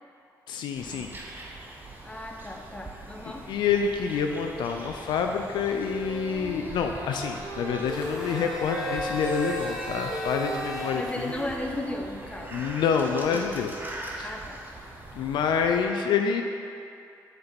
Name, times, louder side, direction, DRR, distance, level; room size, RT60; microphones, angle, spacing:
voice 1, 0.5-1.1 3.5-11.3 12.5-13.7 14.2-14.3 15.1-16.4, left 6 dB, 70° left, 4 dB, 0.4 m, -27 dB
sound 1, 0.7-15.9, right 2 dB, 25° right, 1.0 m, -43 dB
voice 2, 2.0-3.5 10.9-12.7 14.2-14.6, left 1 dB, 15° left, 2 dB, 0.8 m, -35 dB
Wind instrument woodwind instrument, 5.8-12.6, right 1 dB, 50° right, 1.3 m, -37 dB
Domestic sounds home sounds, 7.9-11.9, equal, 5° right, 1.5 m, -37 dB
6.4 x 4.4 x 4.1 m, 2.6 s
hypercardioid pair, 50°, 8 cm